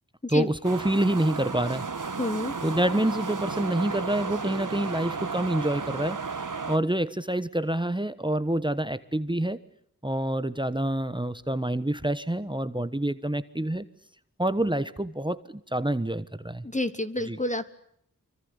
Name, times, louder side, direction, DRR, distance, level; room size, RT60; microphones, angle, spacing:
voice 1, 0.3-1.9 2.6-6.2 6.7-9.6 10.0-13.9 14.4-16.6 17.3-17.4, right 1 dB, 15° right, 14 dB, 1.2 m, -27 dB
sound 1, 0.6-6.8, right 4 dB, 60° right, 1.6 m, -33 dB
voice 2, 2.2-2.5 16.6-17.7, left 1 dB, 20° left, 12 dB, 1.4 m, -29 dB
25.5 x 24.5 x 8.2 m, 0.68 s
wide cardioid pair, 45°, 35 cm